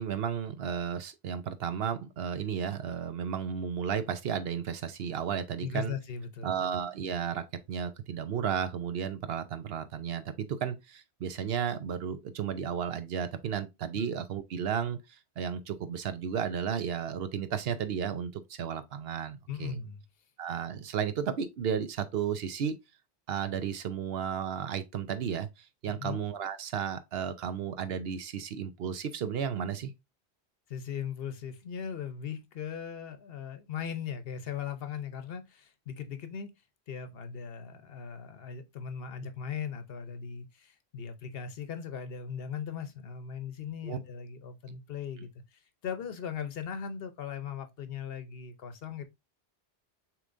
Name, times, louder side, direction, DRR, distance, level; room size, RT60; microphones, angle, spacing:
voice 1, 0.0-5.9 6.4-19.8 20.4-22.8 23.3-29.9 43.8-44.0, right 8 dB, 70° right, 0.8 m, -33 dB
voice 2, 5.6-6.7 13.9-14.1 19.5-20.0 25.9-26.2 30.7-36.5 36.9-49.1, left 7 dB, 65° left, 0.9 m, -39 dB
6.7 x 3.1 x 2.5 m
omnidirectional pair, 1.1 m